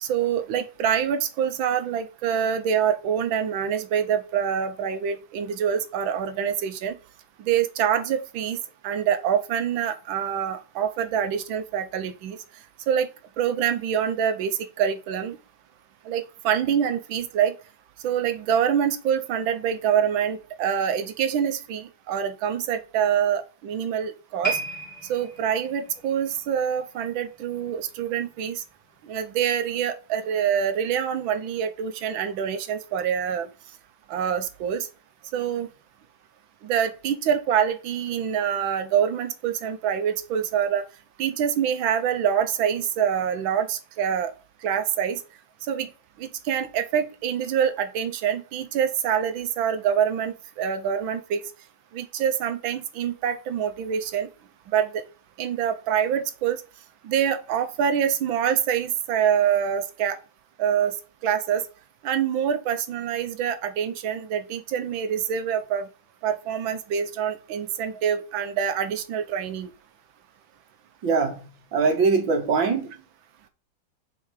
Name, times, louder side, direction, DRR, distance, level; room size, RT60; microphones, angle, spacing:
voice 1, 0.0-7.0 7.4-8.6 8.8-12.4 12.9-13.1 13.4-15.4 16.0-17.5 18.0-24.6 25.1-28.6 29.0-33.5 34.1-34.9 35.3-35.7 36.6-40.9 41.2-44.3 44.6-45.2 45.7-45.9 46.2-51.4 51.9-54.3 54.7-55.0 55.4-56.6 57.0-60.2 60.6-61.0 61.2-61.6 62.0-65.9 66.2-69.7, right 8 dB, 90° right, 1.6 m, -25 dB
sound 1, 24.4-27.7 28.0-28.3 29.0-29.1, right 3 dB, 25° left, 2.4 m, -34 dB
voice 2, 71.0-72.9, right 4 dB, 75° right, 2.4 m, -22 dB
5.7 x 4.6 x 4.7 m
omnidirectional pair, 2.1 m